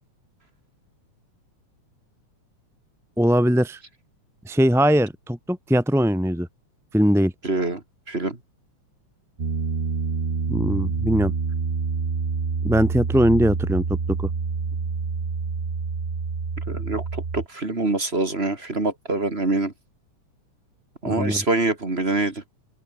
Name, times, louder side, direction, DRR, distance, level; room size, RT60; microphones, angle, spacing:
voice 1, 3.2-3.8 4.4-6.5 6.9-7.3 10.5-11.3 12.6-14.3 21.0-21.4, equal, ahead, 1.0 m, -20 dB
voice 2, 7.4-8.4 16.7-19.7 21.0-22.4, right 2 dB, 20° right, 2.8 m, -25 dB
Piano, 9.4-17.5, right 5 dB, 40° right, 0.8 m, -27 dB
open air
omnidirectional pair, 3.5 m